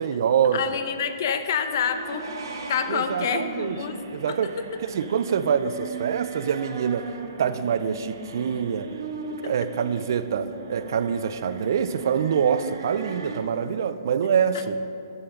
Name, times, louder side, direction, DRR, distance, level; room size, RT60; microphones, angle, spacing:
voice 1, 0.0-0.6 2.9-3.8 4.1-4.5 4.9-7.1 7.4-8.9 9.4-14.8, right 7 dB, 60° right, 12 dB, 0.4 m, -25 dB
voice 2, 0.5-2.3 2.7-4.0 4.3-4.7 9.4-9.5, left 7 dB, 55° left, 9 dB, 0.6 m, -27 dB
sound 1, 1.6-13.4, right 4 dB, 80° right, 1.1 m, -38 dB
11.0 x 3.9 x 5.7 m, 2.8 s
hypercardioid pair, 150°, 2 cm